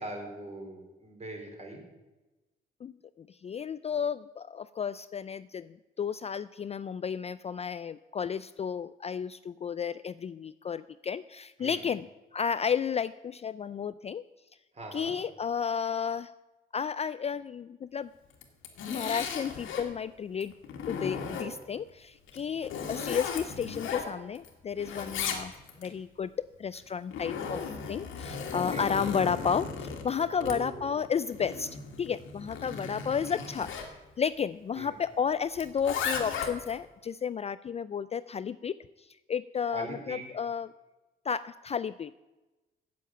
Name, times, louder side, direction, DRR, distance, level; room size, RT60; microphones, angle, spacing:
voice 1, 0.0-1.8 11.6-11.8 14.7-15.1 28.5-28.9 30.4-31.0 34.8-34.9 39.7-40.2, right 2 dB, 35° right, 1 dB, 4.0 m, -41 dB
voice 2, 2.8-14.2 14.9-16.3 16.7-18.1 18.9-20.5 20.9-25.5 25.8-27.6 27.9-31.7 32.0-33.7 34.2-40.7 41.3-42.1, left 7 dB, 30° left, 15 dB, 0.3 m, -32 dB
Zipper (clothing), 18.3-19.9 20.4-21.8 22.3-24.5 24.8-25.9 26.8-33.9 35.6-36.8, left 6 dB, 80° left, 1.8 m, -36 dB
8.3 x 7.7 x 8.9 m, 1.1 s
cardioid pair, 90°, 20 cm